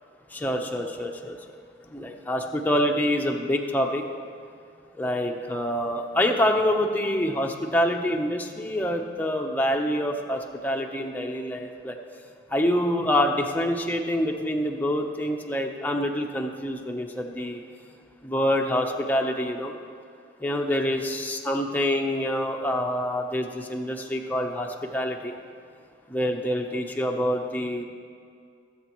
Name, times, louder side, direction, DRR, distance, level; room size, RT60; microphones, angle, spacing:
voice 1, 0.3-1.4 1.9-4.0 5.0-12.0 12.5-17.6 18.2-19.7 20.4-25.3 26.1-27.8, equal, 10° left, 2 dB, 0.8 m, -26 dB
21.5 x 8.0 x 3.1 m, 2.3 s
head